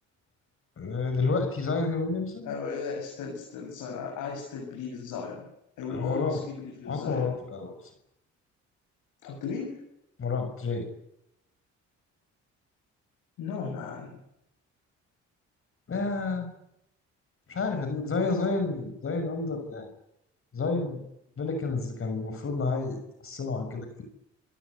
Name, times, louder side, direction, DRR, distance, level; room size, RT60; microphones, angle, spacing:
voice 1, 0.8-2.5 5.9-6.4 6.9-7.7 10.2-10.8 15.9-16.5 17.5-19.9 20.5-21.0 21.4-24.0, left 4 dB, 45° left, 6 dB, 6.4 m, -30 dB
voice 2, 2.4-5.5 5.8-7.3 9.2-9.8 13.4-14.2, left 5 dB, 85° left, -2 dB, 7.6 m, -36 dB
27.0 x 18.0 x 9.6 m, 0.82 s
cardioid pair, 90°, 30 cm